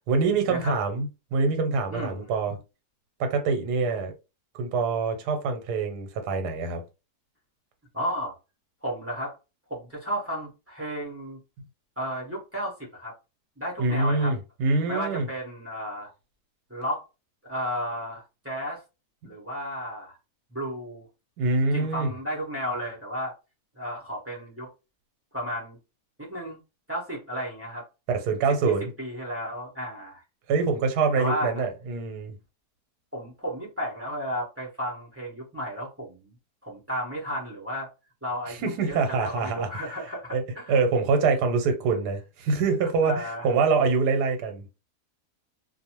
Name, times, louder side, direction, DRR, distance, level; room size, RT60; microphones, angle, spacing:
voice 1, 0.1-2.6 3.2-4.1 4.6-6.8 13.8-15.3 21.4-22.1 28.1-28.9 30.5-32.3 38.5-39.7 40.3-40.4 40.7-44.7, right 4 dB, 80° right, 1.2 m, -25 dB
voice 2, 1.9-2.3 7.9-8.3 8.8-9.4 9.7-11.4 12.0-13.1 13.6-14.3 14.9-16.1 16.7-17.0 17.5-18.8 19.2-20.2 20.5-21.0 21.7-23.3 23.8-24.7 25.3-25.8 26.2-26.6 26.9-27.8 28.6-30.2 31.1-31.6 33.1-36.3 36.6-37.9 38.2-40.8 42.8-43.5, equal, 15° right, 0.6 m, -33 dB
2.6 x 2.2 x 2.8 m
omnidirectional pair, 1.7 m